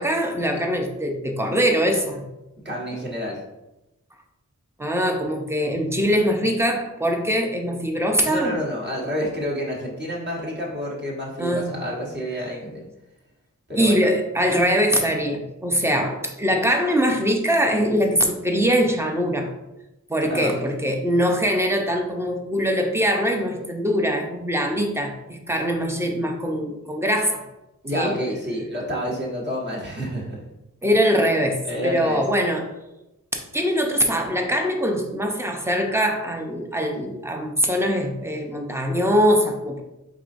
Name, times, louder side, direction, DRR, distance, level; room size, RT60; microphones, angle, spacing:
voice 1, 0.0-2.3 4.8-8.5 11.4-11.7 13.8-19.5 20.1-27.5 27.9-28.1 30.8-32.7 33.3-39.8, equal, 10° right, 2 dB, 0.6 m, -22 dB
voice 2, 2.6-3.4 8.2-12.8 13.7-14.0 20.2-20.8 27.8-30.4 31.7-32.2, equal, 35° right, -4 dB, 1.3 m, -29 dB
4.8 x 3.8 x 2.6 m, 0.94 s
wide cardioid pair, 100°, 31 cm